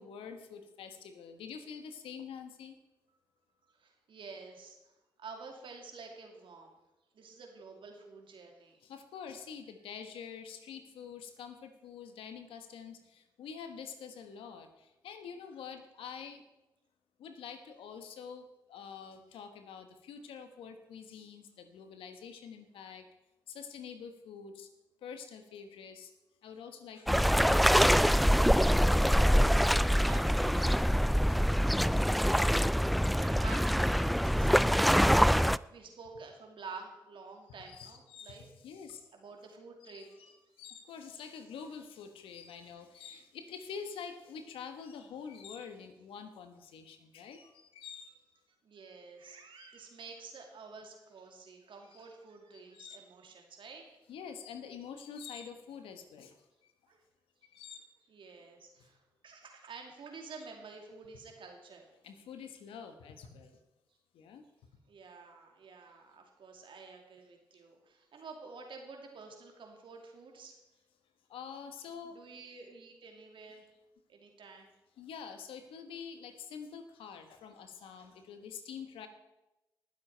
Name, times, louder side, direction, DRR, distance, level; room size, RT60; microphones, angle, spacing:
voice 1, 0.0-2.8 8.8-16.4 17.2-23.0 23.5-24.7 25.0-26.1 26.4-28.5 35.3-35.5 37.6-39.0 39.9-48.1 49.6-49.7 51.9-52.0 52.5-53.0 54.1-56.4 57.5-57.8 62.0-63.6 64.1-64.4 71.3-72.2 75.0-79.1, left 6 dB, 85° left, 7 dB, 1.2 m, -46 dB
voice 2, 3.6-4.8 5.2-6.8 7.1-8.8 30.0-34.9 35.7-38.5 39.1-40.2 40.5-40.6 48.6-53.8 56.9-57.0 58.1-59.0 59.2-61.9 64.9-70.6 72.1-73.7 74.1-74.7, right 4 dB, 70° right, 2 dB, 2.6 m, -50 dB
sound 1, 27.1-35.6, equal, ahead, 0.3 m, -25 dB
19.0 x 7.6 x 4.5 m, 0.98 s
supercardioid pair, 40°, 9 cm